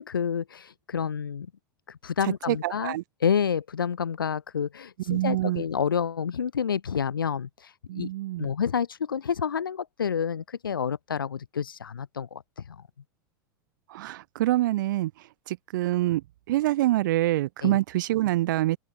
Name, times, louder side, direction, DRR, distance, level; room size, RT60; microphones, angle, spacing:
voice 1, 0.0-1.5 1.9-8.1 8.4-12.7 17.6-17.8, left 7 dB, 85° left, 1.7 m, -29 dB
voice 2, 2.2-3.0 5.1-5.6 7.9-8.5 13.9-15.1 15.5-16.2 16.5-18.8, right 16 dB, 65° right, 0.9 m, -26 dB
open air
hypercardioid pair, 90°, 11 cm